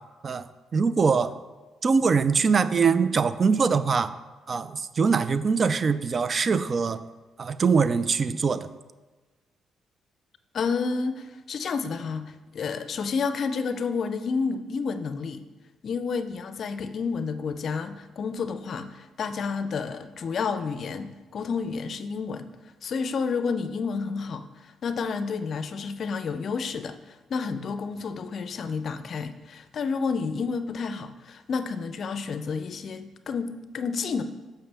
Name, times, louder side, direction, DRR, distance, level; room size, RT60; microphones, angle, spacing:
voice 1, 0.7-1.3 1.8-4.1 4.5-7.0 7.4-8.7, right 5 dB, 40° right, 14 dB, 0.3 m, -23 dB
voice 2, 10.5-15.4 15.8-22.5 22.8-34.2, left 5 dB, 55° left, 10 dB, 0.5 m, -30 dB
7.0 x 5.6 x 3.4 m, 1.3 s
cardioid pair, 90°, 0 cm